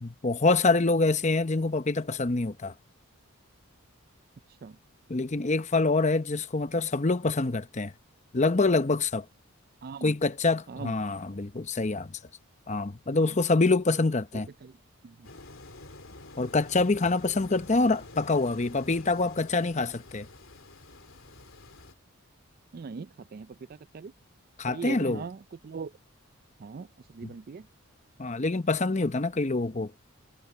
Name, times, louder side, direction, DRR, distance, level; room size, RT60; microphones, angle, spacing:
voice 1, 0.0-2.7 5.1-7.9 8.3-9.2 10.0-12.2 12.7-14.5 16.4-20.3 24.6-25.2 27.2-27.3 28.2-29.9, left 3 dB, 30° left, 0.7 m, -26 dB
voice 2, 9.8-10.1 10.7-10.9 14.6-14.7 15.0-15.3 22.7-24.1 24.7-25.9 26.6-27.7, right 5 dB, 40° right, 0.4 m, -40 dB
sound 1, 15.2-21.9, left 2 dB, 65° left, 3.4 m, -48 dB
head